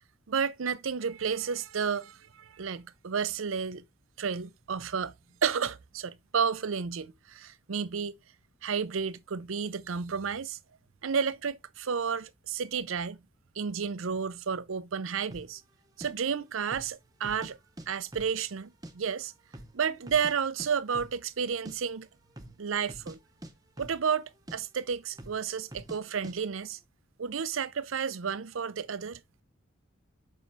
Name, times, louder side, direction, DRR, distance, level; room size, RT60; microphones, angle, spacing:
voice 1, 0.3-3.8 4.2-5.1 5.4-8.1 8.6-10.6 11.0-13.2 13.6-15.6 16.0-17.6 17.9-19.3 19.7-22.1 22.6-23.2 23.8-26.8 27.2-29.2, right 6 dB, 85° right, 0.6 m, -31 dB
sound 1, 15.3-15.5 16.0-16.1 16.6-16.9 17.2-17.9 18.1-18.9 19.2-19.3 19.5-20.3 20.6-20.7 20.9-21.2 21.5-21.8 22.3-22.6 22.9-23.2 23.4-24.2 24.5-24.6 25.2-25.4 25.7-26.0 26.2-26.4, right 1 dB, 20° right, 0.8 m, -45 dB
7.4 x 5.4 x 3.2 m
head